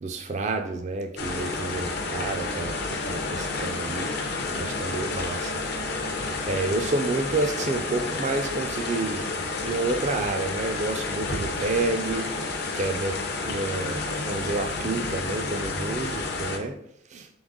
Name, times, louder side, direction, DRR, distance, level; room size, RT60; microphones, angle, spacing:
voice 1, 0.0-4.1 4.5-5.6 6.5-9.2 9.6-12.3 12.8-16.8 17.1-17.3, right 3 dB, 35° right, 5 dB, 0.3 m, -29 dB
Rain From Window, 1.2-16.6, left 3 dB, 55° left, 0.6 m, -30 dB
3.9 x 3.2 x 3.6 m, 0.72 s
head